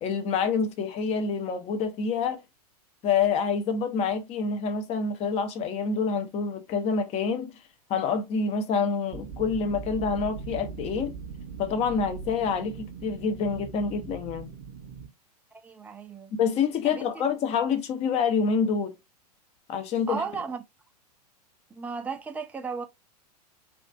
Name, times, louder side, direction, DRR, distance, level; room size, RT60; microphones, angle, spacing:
voice 1, 0.0-2.4 3.0-7.5 7.9-11.1 11.6-14.5 16.3-19.0 19.7-20.2, left 5 dB, 30° left, 0.7 m, -27 dB
sound 1, 9.1-15.1, right 6 dB, 45° right, 0.7 m, -40 dB
voice 2, 15.6-16.3 16.8-17.2 20.1-20.6 21.7-22.8, right 5 dB, 5° right, 0.4 m, -35 dB
3.7 x 2.4 x 2.4 m
figure-of-eight pair, 100°, 21 cm